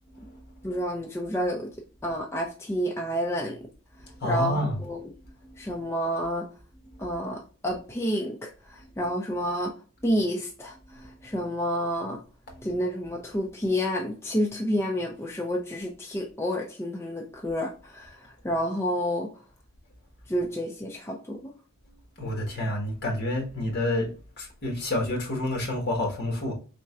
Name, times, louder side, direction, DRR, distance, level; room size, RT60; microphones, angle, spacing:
voice 1, 0.6-1.7 2.0-3.6 4.2-5.1 5.6-6.5 7.0-9.7 10.0-12.2 12.6-19.3 20.3-21.5, equal, 10° left, 0.5 m, -29 dB
voice 2, 4.0-4.9 5.4-5.5 7.0-7.1 11.0-11.1 12.5-12.8 22.2-24.1 24.4-26.5, left 1 dB, 50° left, 1.4 m, -29 dB
4.2 x 3.7 x 2.4 m
head